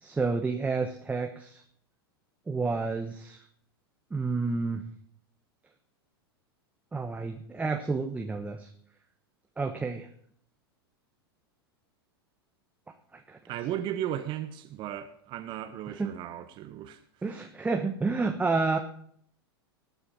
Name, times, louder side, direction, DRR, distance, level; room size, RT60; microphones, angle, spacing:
voice 1, 0.0-1.6 2.5-3.4 4.1-4.8 6.9-8.7 9.6-10.1 13.3-13.4 16.0-16.1 17.2-18.8, right 4 dB, 10° right, 1.1 m, -30 dB
voice 2, 13.5-17.0, right 11 dB, 40° right, 1.0 m, -35 dB
19.0 x 6.4 x 5.4 m
figure-of-eight pair, 95°, 13 cm